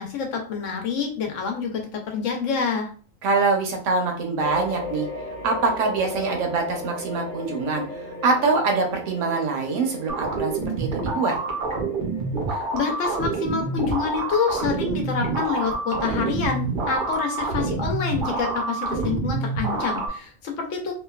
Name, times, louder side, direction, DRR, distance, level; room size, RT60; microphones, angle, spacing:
voice 1, 0.0-2.9 12.5-20.9, left 5 dB, 70° left, 3 dB, 1.0 m, -27 dB
voice 2, 3.2-5.1 5.4-11.3, right 4 dB, 75° right, 2 dB, 1.0 m, -24 dB
sound 1, 4.4-17.2, left 2 dB, 15° left, 0.4 m, -37 dB
sound 2, 10.1-20.1, right 3 dB, 50° right, 0.7 m, -27 dB
2.8 x 2.2 x 2.3 m, 0.41 s
omnidirectional pair, 1.4 m